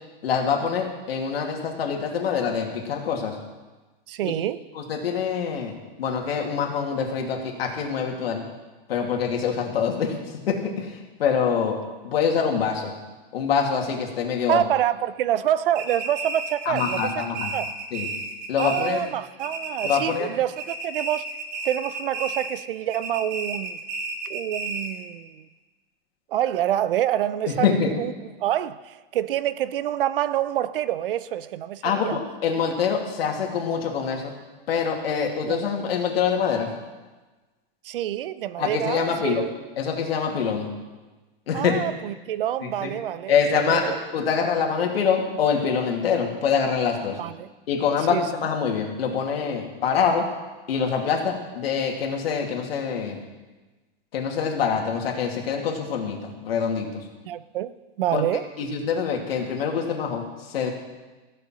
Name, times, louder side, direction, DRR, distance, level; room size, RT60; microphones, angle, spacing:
voice 1, 0.2-3.4 4.2-4.3 4.7-8.4 8.9-11.8 12.0-12.9 13.3-14.6 16.7-17.5 17.9-18.1 18.5-19.0 19.8-20.3 27.5-27.9 31.8-34.3 34.7-36.7 38.6-39.4 39.8-40.7 41.5-41.7 42.6-42.9 43.3-47.2 47.7-50.3 50.7-53.2 54.1-57.0 58.1-58.2 58.6-60.7, left 6 dB, 80° left, 1 dB, 2.7 m, -25 dB
voice 2, 4.1-4.6 14.5-17.2 17.5-17.7 18.6-21.3 21.6-23.8 24.3-25.4 26.3-32.2 35.5-35.6 37.8-39.5 41.5-44.0 47.2-47.5 48.1-48.2 57.2-58.4, right 12 dB, 65° right, 16 dB, 0.7 m, -27 dB
sound 1, 15.7-19.1 19.4-20.3 20.6-22.6 22.9-25.0, right 3 dB, 50° right, 1.9 m, -32 dB
15.5 x 6.9 x 7.5 m, 1.2 s
supercardioid pair, 170°, 30 cm